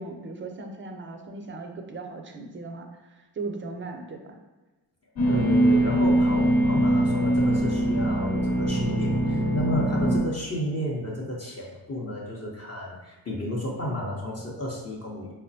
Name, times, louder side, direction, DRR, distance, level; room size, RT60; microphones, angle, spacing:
voice 1, 0.0-4.4, right 3 dB, 25° right, 4 dB, 0.5 m, -38 dB
sound 1, 5.2-10.2, right 1 dB, 65° left, 1.1 m, -22 dB
voice 2, 5.3-15.3, equal, 30° left, -3 dB, 0.7 m, -32 dB
4.0 x 2.1 x 2.6 m, 1.2 s
cardioid pair, 45°, 49 cm